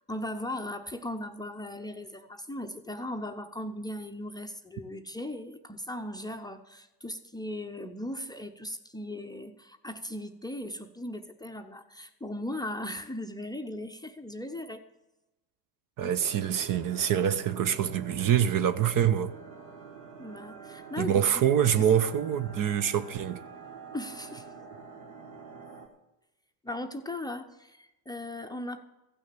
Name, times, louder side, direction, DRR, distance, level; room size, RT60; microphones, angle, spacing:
voice 1, 0.1-14.8 20.2-21.3 21.7-21.9 23.9-24.5 26.6-28.8, left 1 dB, 10° left, 0.7 m, -38 dB
voice 2, 16.0-19.3 21.0-23.4, right 9 dB, 45° right, 0.7 m, -25 dB
sound 1, 16.2-25.9, right 5 dB, 60° right, 2.1 m, -46 dB
15.0 x 6.3 x 6.9 m
hypercardioid pair, 65°, 48 cm